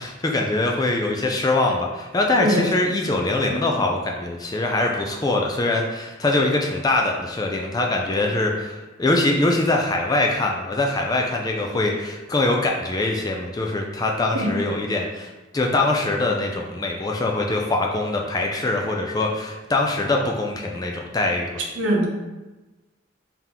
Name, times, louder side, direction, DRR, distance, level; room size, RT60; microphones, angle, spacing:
voice 1, 0.0-21.6, left 2 dB, 20° left, 1 dB, 0.3 m, -23 dB
voice 2, 2.4-2.7 3.5-3.6 14.3-14.5 21.8-22.1, equal, 70° right, -1 dB, 0.8 m, -22 dB
3.9 x 2.8 x 3.5 m, 1.1 s
head